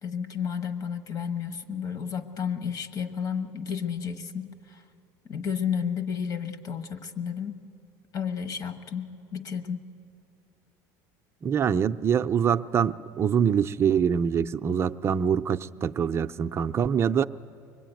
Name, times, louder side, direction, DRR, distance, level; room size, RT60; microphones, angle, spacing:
voice 1, 0.0-4.8 5.3-7.6 8.1-9.8, left 7 dB, 40° left, 1.3 m, -32 dB
voice 2, 11.4-17.2, right 7 dB, 30° right, 0.5 m, -24 dB
23.5 x 21.5 x 9.2 m
supercardioid pair, 125°, 9 cm